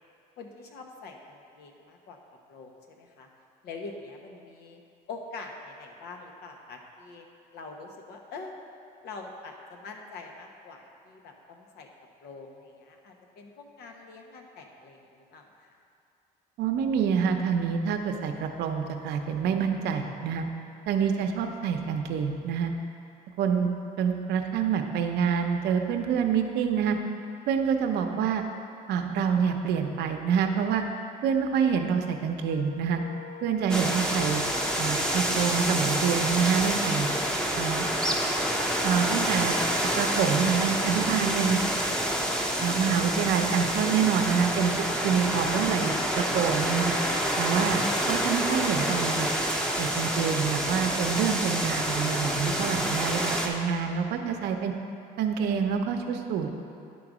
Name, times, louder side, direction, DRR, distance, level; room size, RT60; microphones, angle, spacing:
voice 1, 0.4-2.2 2.5-3.3 3.6-4.8 5.1-7.3 7.5-8.5 9.0-11.9 12.2-15.0 15.3-15.7 21.2-21.4 54.3-54.4, left 3 dB, 75° left, 2 dB, 1.1 m, -44 dB
voice 2, 16.6-20.4 20.9-22.7 23.4-23.7 24.0-27.0 27.5-28.5 28.9-30.8 31.2-33.0 33.4-34.4 34.8-37.1 37.6-37.9 38.8-39.6 40.0-41.6 42.6-46.9 47.4-49.3 49.8-54.7 55.2-56.6, right 7 dB, 80° right, 5 dB, 0.7 m, -27 dB
Wind instrument woodwind instrument, 32.5-37.3, left 7 dB, 45° left, 1.1 m, -44 dB
sound 1, 33.7-53.5, equal, 5° left, 0.8 m, -28 dB
10.5 x 3.9 x 6.1 m, 2.5 s
cardioid pair, 110°, 17 cm